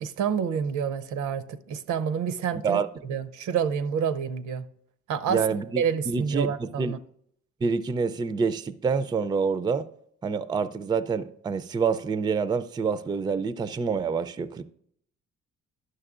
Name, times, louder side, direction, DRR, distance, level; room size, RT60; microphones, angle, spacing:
voice 1, 0.0-2.8 3.1-4.7 5.1-5.4 5.8-7.0, right 7 dB, 75° right, 0.6 m, -28 dB
voice 2, 5.3-6.9 7.6-9.9 10.2-14.6, right 5 dB, 15° right, 0.3 m, -27 dB
11.0 x 6.4 x 2.4 m
cardioid pair, 90°, 30 cm